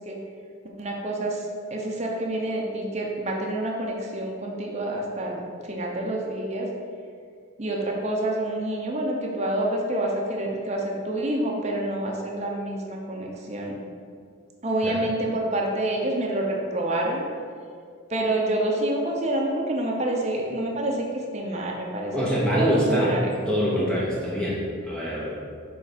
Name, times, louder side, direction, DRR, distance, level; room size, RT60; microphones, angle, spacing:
voice 1, 0.8-6.7 7.6-13.8 14.6-17.2 18.1-21.1 21.3-22.3 22.5-23.4, right 1 dB, 30° right, -1 dB, 0.8 m, -27 dB
voice 2, 22.1-23.1 23.5-25.3, equal, 5° left, -6 dB, 0.8 m, -24 dB
6.7 x 3.8 x 5.1 m, 2.2 s
head